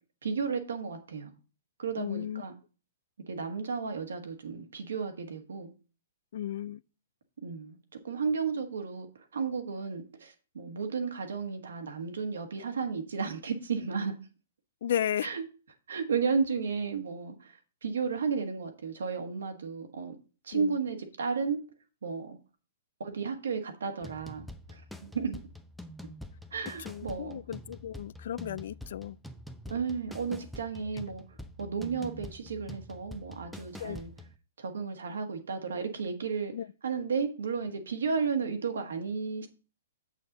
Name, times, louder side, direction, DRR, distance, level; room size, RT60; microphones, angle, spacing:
voice 1, 0.2-1.3 1.8-2.5 3.3-5.7 7.4-7.8 8.0-14.1 15.2-15.4 15.9-20.1 20.4-21.6 22.0-22.4 23.0-25.4 26.5-27.4 29.7-34.1 34.6-36.5 36.8-39.5, right 5 dB, 70° right, 1.5 m, -33 dB
voice 2, 2.0-2.5 6.3-6.8 14.8-15.4 20.5-20.8 26.8-29.2 33.8-34.0 36.5-36.7, left 10 dB, 55° left, 0.3 m, -34 dB
sound 1, 24.0-34.4, left 1 dB, ahead, 0.7 m, -46 dB
7.7 x 6.5 x 3.9 m
figure-of-eight pair, 115°, 0 cm